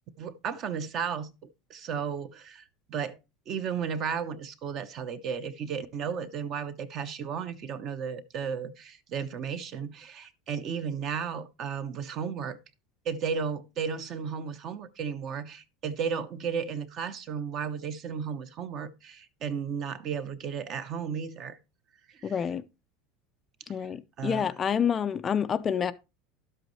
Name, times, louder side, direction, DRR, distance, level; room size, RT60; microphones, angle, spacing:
voice 1, 0.2-1.3 1.7-3.2 3.5-12.6 13.0-21.6 22.1-22.5 24.2-24.5, right 6 dB, 35° right, 0.7 m, -34 dB
voice 2, 22.2-22.6 23.7-25.9, left 7 dB, 20° left, 0.4 m, -28 dB
11.5 x 7.9 x 3.1 m
supercardioid pair, 170°, 0 cm